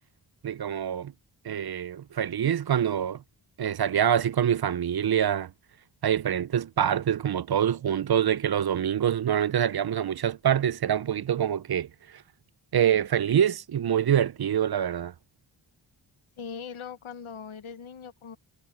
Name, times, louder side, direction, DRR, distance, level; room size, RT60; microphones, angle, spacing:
voice 1, 0.4-1.1 1.4-3.2 3.6-5.5 6.0-12.2 12.7-15.1, right 9 dB, 50° right, 0.6 m, -25 dB
voice 2, 16.4-18.4, left 6 dB, 80° left, 1.3 m, -40 dB
cardioid pair, 45°, 49 cm